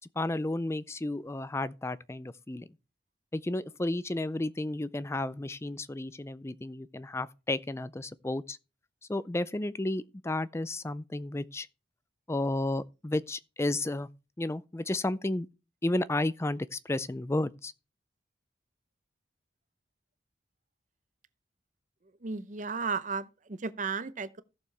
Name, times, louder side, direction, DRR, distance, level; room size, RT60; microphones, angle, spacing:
voice 1, 0.2-2.7 3.3-8.6 9.1-11.7 12.3-14.1 14.4-15.5 15.8-17.7, left 2 dB, 15° left, 0.4 m, -32 dB
voice 2, 22.2-24.4, right 5 dB, 45° right, 0.7 m, -34 dB
16.0 x 6.9 x 3.3 m
head